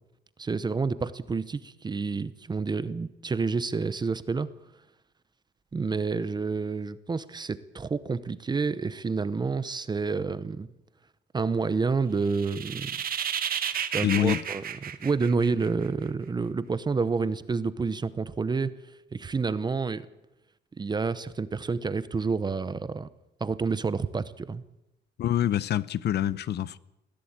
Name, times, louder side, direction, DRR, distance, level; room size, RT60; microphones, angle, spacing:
voice 1, 0.4-4.5 5.7-10.7 11.3-13.0 13.9-18.7 19.1-20.1 20.8-23.1 23.4-24.6, right 4 dB, 20° right, 0.8 m, -29 dB
sound 1, 12.3-15.9, right 8 dB, 50° right, 1.4 m, -32 dB
voice 2, 14.0-14.4 25.2-26.8, left 11 dB, 60° left, 0.8 m, -26 dB
21.0 x 15.5 x 8.8 m
cardioid pair, 160°, 19 cm